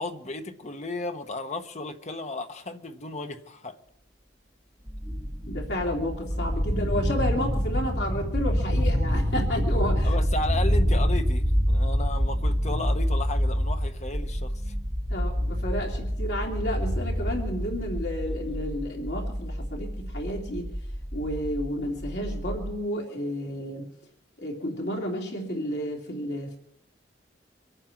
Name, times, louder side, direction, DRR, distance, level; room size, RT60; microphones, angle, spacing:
voice 1, 0.0-3.8 10.0-14.7, left 2 dB, 40° left, 1.2 m, -34 dB
sound 1, 4.9-22.7, equal, 15° right, 2.3 m, -27 dB
voice 2, 5.5-10.1 15.1-20.7 21.1-23.9 24.4-26.6, equal, 65° left, 3.0 m, -31 dB
25.0 x 9.1 x 5.9 m
head